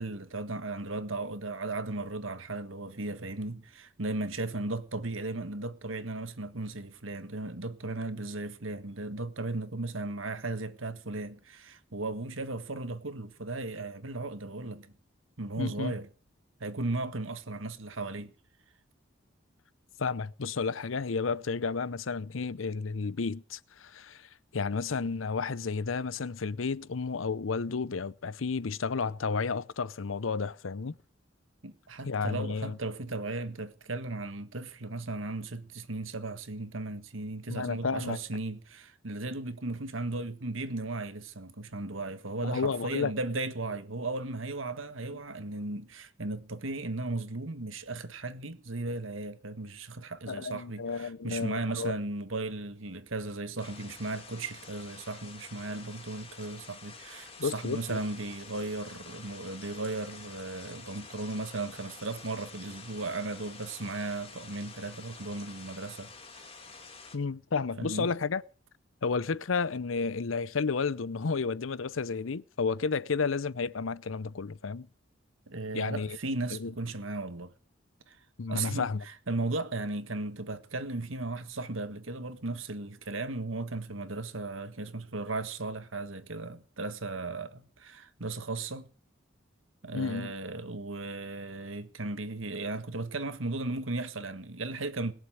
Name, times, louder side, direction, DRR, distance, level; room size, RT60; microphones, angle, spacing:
voice 1, 0.0-14.9 15.4-16.1 16.6-18.3 31.6-66.5 67.8-68.1 75.5-77.5 78.1-78.2 78.5-88.9 89.8-95.1, right 2 dB, 90° right, 1.7 m, -36 dB
voice 2, 15.6-15.9 20.0-30.9 32.0-32.8 37.5-38.2 42.4-43.1 50.3-52.0 57.4-58.0 67.1-68.4 69.0-74.9 75.7-76.2 76.5-76.7 78.4-79.0 89.9-90.3, left 5 dB, 90° left, 0.7 m, -32 dB
sound 1, 53.6-67.2, left 4 dB, 30° left, 2.7 m, -49 dB
21.0 x 7.4 x 9.2 m
head